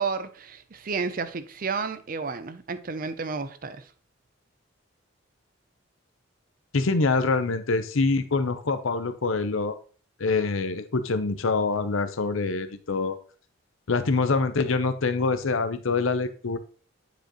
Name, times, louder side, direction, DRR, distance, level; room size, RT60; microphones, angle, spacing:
voice 1, 0.0-3.8, right 5 dB, 45° right, 0.5 m, -31 dB
voice 2, 6.7-9.7 10.2-13.2 13.9-16.6, left 3 dB, 80° left, 0.7 m, -25 dB
9.1 x 5.0 x 3.0 m
head